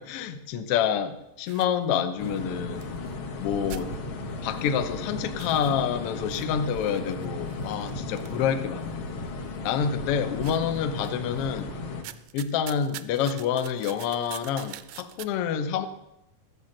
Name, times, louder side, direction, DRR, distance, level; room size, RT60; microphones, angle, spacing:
voice 1, 0.0-2.9 3.4-3.9 4.4-9.1 9.6-11.7 12.3-15.9, left 8 dB, 85° left, 8 dB, 1.3 m, -28 dB
sound 1, 1.5-3.4 3.7-5.0 5.3-9.1 9.6-10.1 10.4-11.6 11.9-15.3, right 15 dB, 80° right, 1.7 m, -46 dB
sound 2, 2.2-12.0, left 3 dB, 60° left, 1.4 m, -35 dB
13.0 x 7.0 x 6.4 m, 0.85 s
omnidirectional pair, 3.8 m